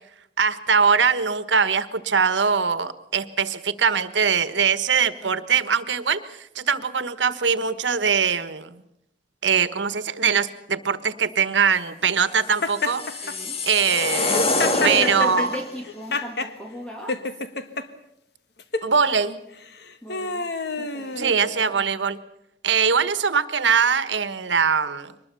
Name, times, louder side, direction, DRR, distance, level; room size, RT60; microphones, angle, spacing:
voice 1, 0.4-8.8 9.4-13.0 13.6-14.4 14.8-15.6 18.8-19.4 21.2-22.2 22.6-25.1, right 6 dB, 90° right, 13 dB, 1.4 m, -22 dB
sound 1, 12.5-15.7, left 2 dB, 35° left, 2.0 m, -26 dB
Laughter, 12.6-13.3 14.2-16.5 17.1-17.8 18.6-18.9 19.6-21.8, left 3 dB, 65° left, 1.5 m, -29 dB
voice 2, 13.2-13.6 14.7-17.2 20.0-20.5 20.8-21.3, equal, 5° left, 2 dB, 2.0 m, -35 dB
23.5 x 20.5 x 6.9 m, 0.80 s
head